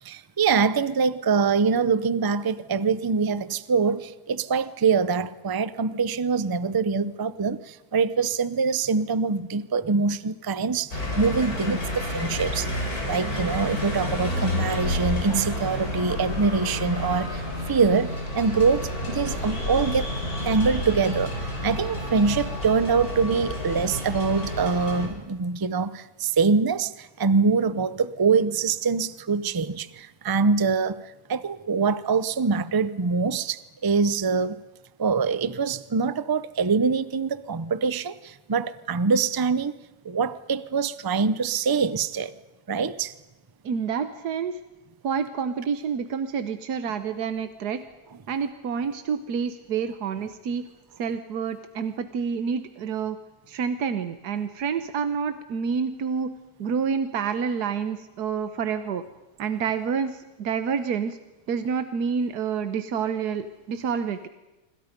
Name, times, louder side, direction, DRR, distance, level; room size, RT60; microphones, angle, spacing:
voice 1, 0.0-12.7 13.1-20.1 20.4-34.6 35.0-39.8 40.0-42.3 42.7-43.1, right 5 dB, 35° right, 15 dB, 0.3 m, -24 dB
sound 1, 10.9-25.1, left 1 dB, 70° left, 5.5 m, -30 dB
voice 2, 43.6-44.6 45.0-47.8 48.3-50.6 51.0-53.2 53.5-56.3 56.6-59.0 59.4-61.2 61.5-64.3, right 6 dB, 80° right, 10 dB, 1.6 m, -28 dB
26.0 x 26.0 x 5.3 m, 1.1 s
omnidirectional pair, 1.7 m